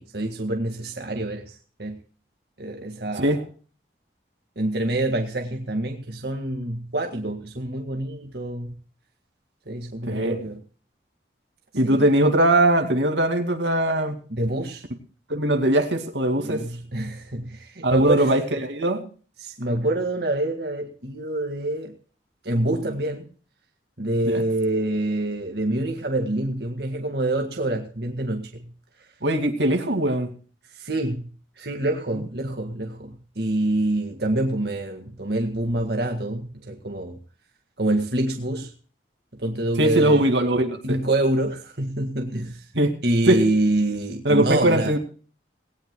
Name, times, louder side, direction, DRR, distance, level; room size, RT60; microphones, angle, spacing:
voice 1, 0.0-2.0 2.6-3.3 4.6-8.7 9.7-10.6 11.8-12.1 14.3-14.8 16.4-18.3 19.4-21.9 22.4-23.3 24.0-28.7 30.7-31.2 31.6-37.2 37.8-38.7 39.3-40.2 40.8-42.7 43.0-45.0, right 1 dB, 60° right, 3 dB, 1.9 m, -26 dB
voice 2, 10.0-10.4 11.7-14.2 15.3-16.6 17.8-19.0 24.3-24.4 29.2-30.3 39.8-41.0 42.7-42.9 43.3-43.4 44.3-45.0, right 1 dB, 80° right, 5 dB, 2.4 m, -21 dB
19.0 x 18.0 x 2.3 m, 0.40 s
head